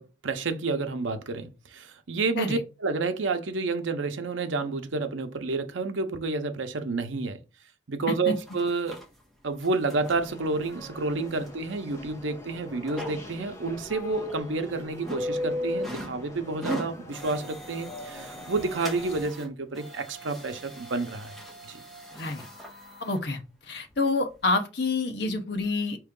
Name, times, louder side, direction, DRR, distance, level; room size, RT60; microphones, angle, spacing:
voice 1, 0.0-7.4 7.9-9.0 9.4-21.3 21.6-21.8, right 3 dB, 85° right, 0.7 m, -30 dB
sound 1, 8.4-9.0 9.5-10.2 10.6-10.7 11.5-11.6 12.0-12.2 12.9-13.4 13.9-14.0 14.3-14.6 15.0-16.2 16.5-19.5 19.7-23.2 23.9-24.0 24.4-24.5, equal, ahead, 1.2 m, -37 dB
sound 2, 10.0-19.2, left 1 dB, 15° left, 0.8 m, -43 dB
voice 2, 22.1-22.4 23.0-26.0, left 3 dB, 60° left, 0.8 m, -28 dB
4.7 x 3.0 x 3.7 m
head